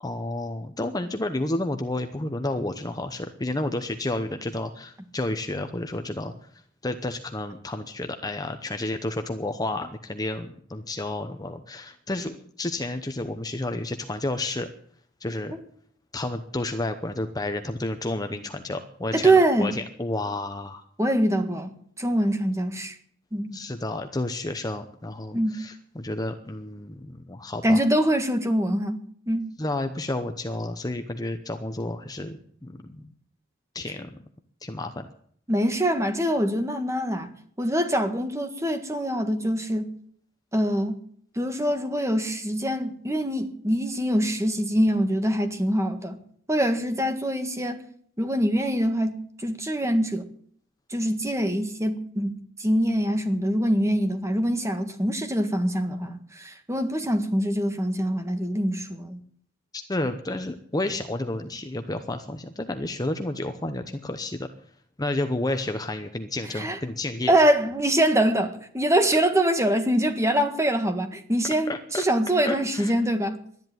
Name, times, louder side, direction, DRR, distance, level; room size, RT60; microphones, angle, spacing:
voice 1, 0.0-6.3 6.8-14.7 15.2-15.5 16.1-20.8 23.5-27.8 29.6-33.1 33.7-34.2 34.6-35.1 59.7-64.5 65.0-67.3 71.7-72.0 72.5-72.9, left 2 dB, 20° left, 0.8 m, -31 dB
voice 2, 19.1-19.7 21.0-22.9 23.3-23.6 25.3-25.5 27.6-29.0 29.3-29.5 35.5-37.3 37.6-39.9 40.5-41.0 41.3-46.2 46.5-47.8 48.2-50.2 50.9-52.3 52.6-59.2 66.6-66.8 67.3-73.4, right 1 dB, 15° right, 1.6 m, -24 dB
12.5 x 10.5 x 9.2 m
head